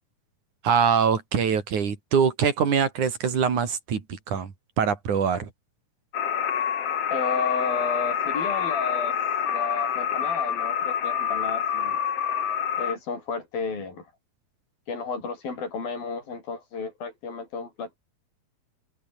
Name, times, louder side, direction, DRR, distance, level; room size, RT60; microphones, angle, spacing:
voice 1, 0.6-4.5 4.8-5.5, right 6 dB, 50° right, 4.6 m, -23 dB
sound 1, 6.1-12.9, left 8 dB, 45° left, 2.5 m, -27 dB
voice 2, 7.1-9.2 9.5-12.0 12.8-14.1 14.9-18.0, left 4 dB, 65° left, 9.2 m, -32 dB
omnidirectional pair, 4.5 m